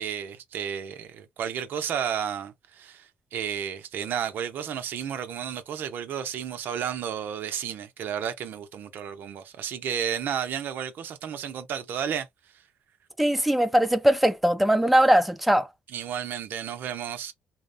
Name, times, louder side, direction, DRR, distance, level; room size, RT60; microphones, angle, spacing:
voice 1, 0.0-12.3 15.9-17.3, right 8 dB, 70° right, 0.5 m, -32 dB
voice 2, 13.2-15.7, right 1 dB, ahead, 0.4 m, -20 dB
2.8 x 2.0 x 2.5 m
supercardioid pair, 65°, 4 cm